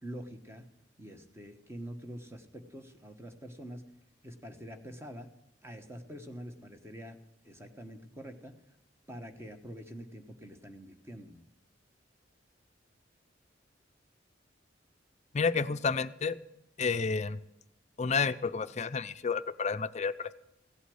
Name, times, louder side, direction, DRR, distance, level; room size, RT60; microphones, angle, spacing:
voice 1, 0.0-0.7 1.0-3.8 4.2-5.3 5.6-7.2 7.4-8.5 9.1-11.5, equal, 15° right, 7 dB, 1.3 m, -45 dB
voice 2, 15.3-16.4 16.8-17.4 18.0-20.3, left 5 dB, 35° left, 13 dB, 0.6 m, -30 dB
16.0 x 8.4 x 7.8 m, 0.85 s
head